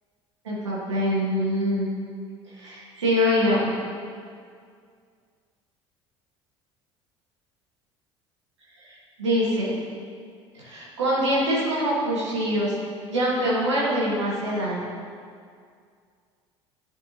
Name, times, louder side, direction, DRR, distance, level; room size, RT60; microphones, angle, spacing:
voice 1, 0.4-1.9 2.5-3.7 8.8-9.7 10.5-12.8 13.1-14.8, equal, 80° right, -7 dB, 1.5 m, -24 dB
11.5 x 4.5 x 2.8 m, 2.2 s
figure-of-eight pair, 60°, 15 cm